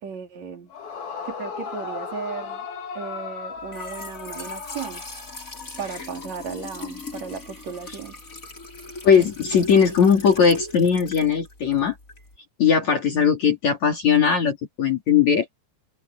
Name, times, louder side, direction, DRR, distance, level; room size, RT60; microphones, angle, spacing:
voice 1, 0.0-0.7 1.3-2.7 2.9-5.1 5.8-8.2, right 6 dB, 50° right, 3.9 m, -35 dB
Yell / Screaming, 0.7-5.6, left 5 dB, 75° left, 5.3 m, -36 dB
Trickle dribble / Fill (with liquid), 3.6-12.4, left 2 dB, 20° left, 4.9 m, -39 dB
voice 2, 9.0-12.0 12.6-15.5, left 7 dB, 50° left, 3.7 m, -19 dB
omnidirectional pair, 4.3 m